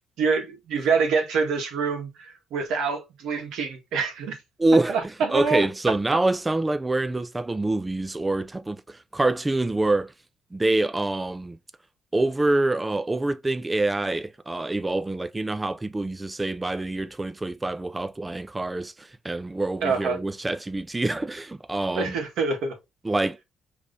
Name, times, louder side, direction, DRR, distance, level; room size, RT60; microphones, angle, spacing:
voice 1, 0.2-4.4 4.9-5.7 19.8-20.2 21.9-22.8, right 5 dB, 85° right, 1.5 m, -26 dB
voice 2, 4.6-10.1 10.5-11.6 12.1-22.2 23.0-23.4, right 2 dB, 15° right, 0.4 m, -26 dB
4.9 x 3.2 x 2.6 m
cardioid pair, 90°, 0 cm